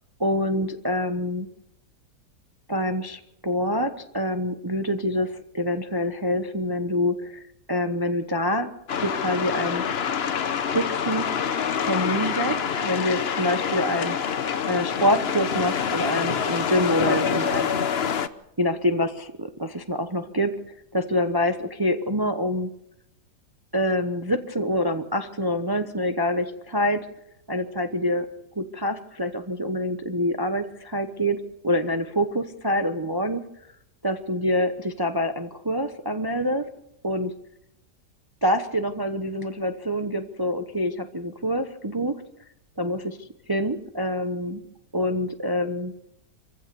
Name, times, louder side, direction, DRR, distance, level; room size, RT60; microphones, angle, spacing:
voice 1, 0.2-1.5 2.7-7.4 7.7-8.7 9.0-9.8 10.6-11.3 11.8-14.2 14.6-17.8 18.6-20.5 20.9-22.7 23.7-27.1 27.5-28.3 28.6-31.4 31.6-33.4 34.0-36.7 37.0-37.3 38.4-42.2 42.8-43.2 43.5-44.6 44.9-46.1, equal, 20° right, 7 dB, 0.8 m, -26 dB
sound 1, 8.9-18.3, left 7 dB, 45° left, 0.9 m, -26 dB
25.0 x 16.0 x 7.0 m, 0.80 s
omnidirectional pair, 1.7 m